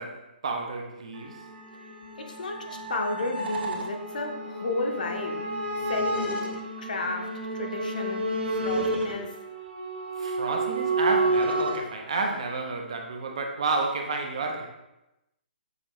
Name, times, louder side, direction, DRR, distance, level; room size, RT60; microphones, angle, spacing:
voice 1, 0.0-1.4 10.2-14.7, right 3 dB, 35° right, 3 dB, 0.4 m, -30 dB
sound 1, 1.1-11.8, right 2 dB, 75° right, 1.1 m, -30 dB
voice 2, 2.2-6.5 6.8-8.2 8.5-9.3, left 2 dB, 50° left, 3 dB, 0.7 m, -32 dB
6.5 x 2.6 x 2.9 m, 0.94 s
hypercardioid pair, 180°, 6 cm